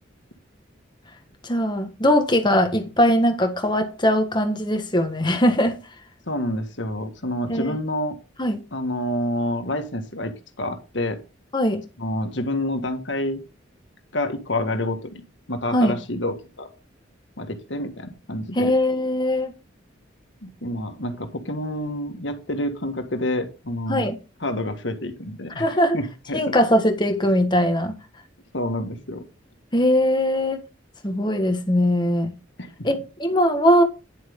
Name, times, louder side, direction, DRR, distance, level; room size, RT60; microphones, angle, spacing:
voice 1, 1.4-5.8 7.5-7.7 8.4-8.6 11.5-11.8 15.7-15.9 18.5-19.5 23.9-24.2 25.6-26.0 26.3-28.0 29.7-30.6 31.0-32.3 32.8-33.8, equal, 25° left, 1.5 m, -20 dB
voice 2, 6.3-8.2 8.7-11.2 12.0-13.4 14.1-15.0 15.5-16.7 17.4-18.7 20.4-24.1 24.4-26.6 28.5-29.2 32.6-32.9, left 1 dB, 70° left, 1.7 m, -28 dB
10.0 x 7.5 x 3.7 m
head